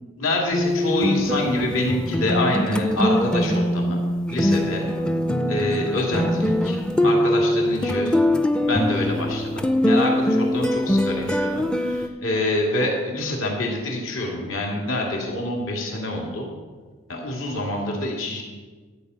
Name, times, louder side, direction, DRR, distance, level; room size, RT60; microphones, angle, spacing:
voice 1, 0.2-4.0 4.3-4.9 5.5-8.2 8.7-16.5 17.1-18.4, left 1 dB, 75° left, -1 dB, 2.5 m, -26 dB
sound 1, 0.5-12.1, left 1 dB, 5° left, 0.4 m, -22 dB
12.5 x 5.3 x 8.0 m, 1.4 s
head